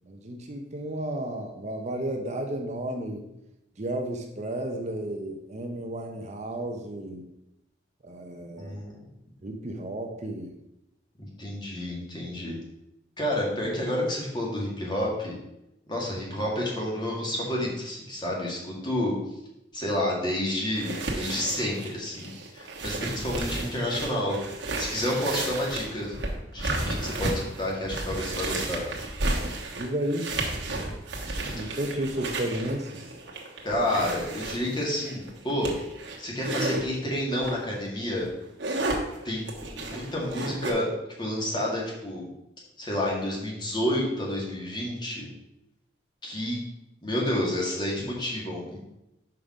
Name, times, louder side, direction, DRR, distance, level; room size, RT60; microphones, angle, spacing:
voice 1, 0.1-3.3 3.8-7.3 8.0-8.8 9.4-10.5 29.8-30.3 31.5-33.0, right 1 dB, 40° right, 4 dB, 0.7 m, -32 dB
voice 2, 8.6-8.9 11.4-12.5 13.2-15.3 15.9-19.2 19.7-24.4 24.8-26.1 26.5-27.3 27.6-28.8 33.6-35.7 36.2-38.3 39.2-39.4 39.7-40.9 41.2-42.3 42.8-45.3 46.2-46.6 47.0-48.8, left 1 dB, 25° left, -3 dB, 1.8 m, -29 dB
sound 1, 20.7-36.8 37.4-37.6 38.0-40.7, right 2 dB, 70° right, 1.2 m, -33 dB
5.8 x 5.2 x 4.9 m, 0.87 s
head